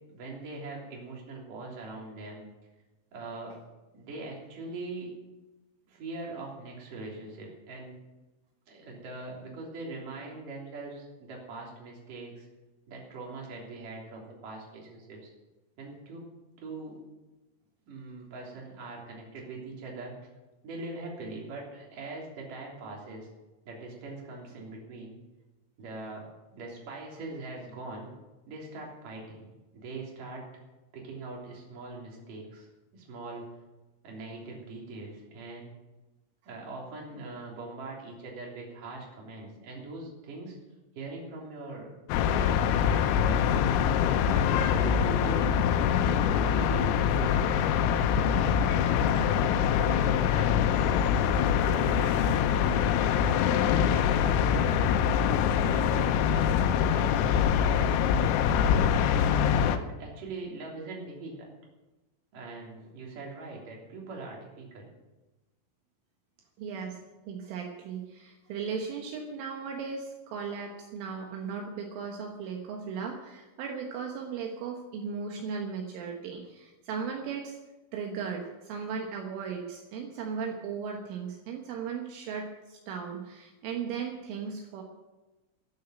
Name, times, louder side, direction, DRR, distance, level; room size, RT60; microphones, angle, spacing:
voice 1, 0.1-2.5 3.1-3.5 3.9-5.1 5.9-8.0 8.7-12.5 12.9-15.3 15.8-16.2 16.6-17.0 17.9-20.1 20.6-23.3 23.6-25.2 25.8-26.3 26.5-28.1 28.5-29.4 29.7-30.4 30.9-32.7 32.9-33.5 34.0-35.7 36.5-40.6 40.9-41.9 42.3-43.6 44.3-45.5 46.0-46.8 47.1-48.6 49.0-51.1 51.5-52.9 53.5-54.9 55.6-56.5 56.8-58.0 58.4-59.1 59.6-61.5 62.3-64.9, right 2 dB, 45° right, -2 dB, 4.4 m, -41 dB
sound 1, 42.1-59.8, left 8 dB, 85° left, 3.6 m, -24 dB
voice 2, 66.6-67.0 67.3-77.6 77.9-84.8, right 6 dB, 75° right, 1 dB, 3.7 m, -37 dB
13.0 x 9.5 x 9.0 m, 1.1 s
omnidirectional pair, 5.9 m